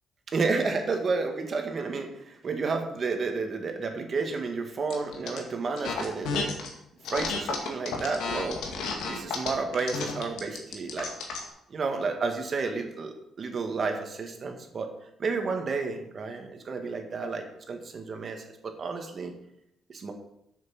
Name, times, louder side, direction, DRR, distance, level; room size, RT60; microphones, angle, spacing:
voice 1, 0.3-6.6 7.1-8.7 9.1-11.1 11.7-14.9 15.2-19.3 19.9-20.1, right 4 dB, 45° right, 4 dB, 1.8 m, -31 dB
sound 1, 4.9-5.4 5.8-6.7 7.0-11.5, left 5 dB, 85° left, 2.0 m, -32 dB
7.3 x 6.5 x 7.2 m, 0.79 s
cardioid pair, 90°, 0 cm